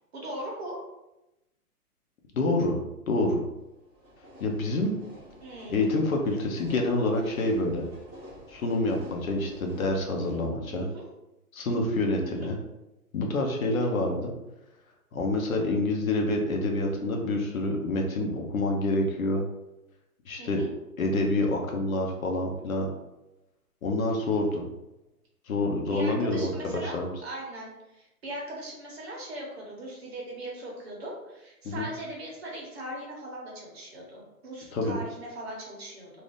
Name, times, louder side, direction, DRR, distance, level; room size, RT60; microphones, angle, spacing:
voice 1, 0.1-0.8 5.4-5.9 10.7-11.0 12.2-12.5 13.6-13.9 20.4-20.7 25.8-36.1, right 1 dB, 45° right, -3 dB, 1.1 m, -40 dB
voice 2, 2.3-2.8 3.1-3.4 4.4-4.9 5.7-7.9 8.5-10.9 11.5-12.6 13.1-14.3 15.1-19.4 20.3-20.6 21.0-22.9 23.8-24.6 25.5-27.1 31.6-31.9 34.7-35.0, left 2 dB, 65° left, 1 dB, 0.8 m, -27 dB
sound 1, 3.6-10.5, equal, 10° left, 0.9 m, -49 dB
2.6 x 2.6 x 3.4 m, 0.93 s
hypercardioid pair, 175°, 45 cm